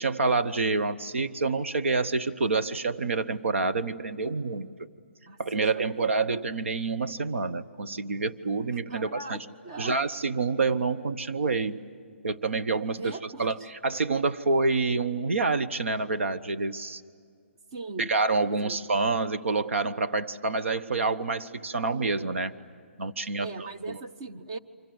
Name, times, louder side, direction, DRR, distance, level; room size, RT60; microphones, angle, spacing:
voice 1, 0.0-4.7 5.4-9.4 9.8-11.8 12.2-17.0 18.0-22.5 23.0-24.0, right 3 dB, 75° right, 10 dB, 1.1 m, -27 dB
voice 2, 5.3-5.7 6.2-6.4 8.9-10.0 13.0-13.5 17.7-18.1 18.6-18.8 23.4-24.6, right 3 dB, 20° right, 8 dB, 0.7 m, -39 dB
28.5 x 25.0 x 7.9 m, 2.2 s
hypercardioid pair, 180°, 7 cm